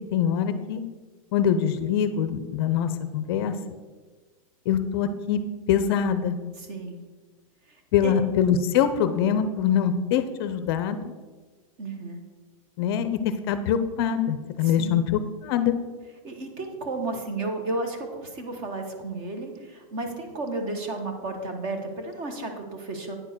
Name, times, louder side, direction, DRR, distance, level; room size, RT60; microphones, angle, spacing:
voice 1, 0.1-0.8 1.3-3.6 4.7-5.4 5.7-6.4 7.9-11.1 12.8-15.8, left 8 dB, 45° left, 11 dB, 0.5 m, -24 dB
voice 2, 6.6-7.0 7.7-7.8 8.0-8.1 11.8-12.2 14.6-15.1 16.2-23.2, right 2 dB, 35° right, 5 dB, 1.1 m, -33 dB
9.0 x 4.4 x 6.0 m, 1.3 s
supercardioid pair, 165°, 18 cm